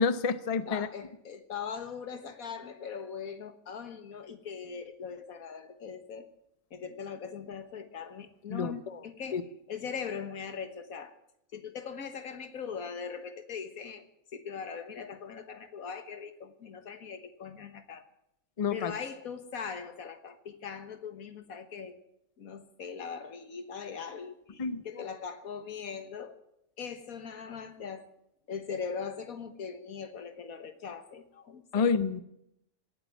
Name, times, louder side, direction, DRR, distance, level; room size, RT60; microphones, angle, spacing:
voice 1, 0.0-0.9 8.5-9.0 9.3-9.4 18.6-18.9 24.6-25.0 31.7-32.2, left 5 dB, 35° left, 13 dB, 0.7 m, -29 dB
voice 2, 0.7-6.3 6.7-9.4 9.7-11.2 11.5-14.1 14.3-18.1 18.7-22.0 22.4-26.4 26.8-28.1 28.5-31.9, left 6 dB, 70° left, 10 dB, 1.8 m, -40 dB
18.0 x 8.7 x 9.2 m, 0.79 s
omnidirectional pair, 1.5 m